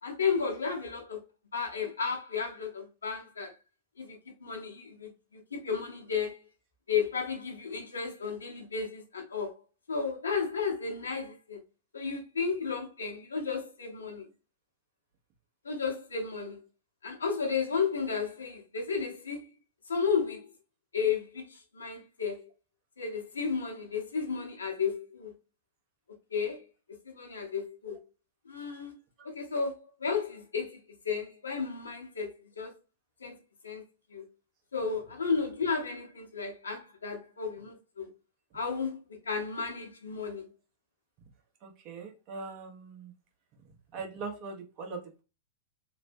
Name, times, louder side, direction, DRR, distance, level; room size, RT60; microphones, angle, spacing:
voice 1, 0.0-1.2 1.5-3.5 4.0-6.4 6.9-9.5 9.9-11.6 11.9-14.2 15.6-16.6 17.0-19.5 19.9-20.5 20.9-22.4 23.0-25.3 26.3-26.7 27.0-28.0 28.5-28.9 29.2-30.8 31.0-32.7 33.2-33.3 33.6-33.8 34.1-34.2 34.7-38.1 38.5-40.4, left 5 dB, 90° left, 0.9 m, -33 dB
voice 2, 41.6-43.1 43.9-45.2, right 4 dB, 45° right, 1.0 m, -41 dB
3.1 x 2.1 x 2.6 m
hypercardioid pair, 100°, 0 cm